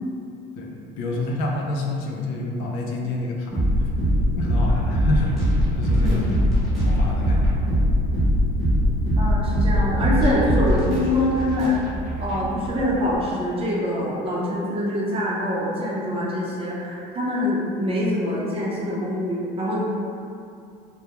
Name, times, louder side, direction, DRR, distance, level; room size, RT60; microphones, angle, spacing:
voice 1, 0.6-3.9 4.3-5.4 5.8-6.4 6.7-7.5, left 2 dB, 85° left, 0 dB, 0.4 m, -28 dB
sound 1, 3.5-13.1, equal, ahead, 0.8 m, -21 dB
voice 2, 9.2-11.8 12.2-19.8, left 1 dB, 30° right, -5 dB, 0.6 m, -24 dB
2.3 x 2.1 x 2.8 m, 2.5 s
cardioid pair, 125°, 20 cm